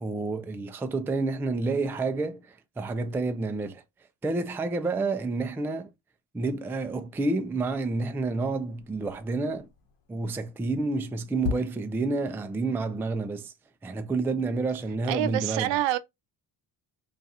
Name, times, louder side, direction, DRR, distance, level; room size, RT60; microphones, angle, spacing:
voice 1, 0.0-3.8 4.2-5.9 6.3-9.7 10.1-13.5 13.8-15.8, right 3 dB, 5° right, 0.3 m, -29 dB
sound 1, 7.3-12.3, left 6 dB, 60° left, 1.1 m, -41 dB
voice 2, 15.1-16.0, right 13 dB, 65° right, 0.5 m, -26 dB
2.5 x 2.4 x 4.0 m
supercardioid pair, 65°, 48 cm